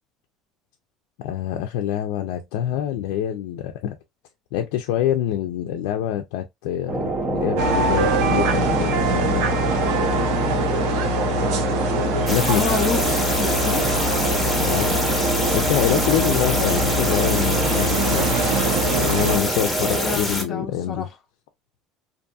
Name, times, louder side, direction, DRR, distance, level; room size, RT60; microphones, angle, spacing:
voice 1, 1.2-4.0 4.5-9.5 12.0-12.8 14.6-15.0 15.5-18.3 19.0-21.1, left 11 dB, 85° left, 0.4 m, -26 dB
sound 1, 6.9-20.2, right 2 dB, 25° right, 0.6 m, -26 dB
sound 2, 7.6-19.4, right 1 dB, 85° right, 0.7 m, -24 dB
sound 3, 12.3-20.4, left 1 dB, 5° left, 0.8 m, -26 dB
voice 2, 12.5-13.8 19.7-21.1, left 5 dB, 35° left, 0.5 m, -29 dB
2.6 x 2.5 x 2.3 m
cardioid pair, 140°, 0 cm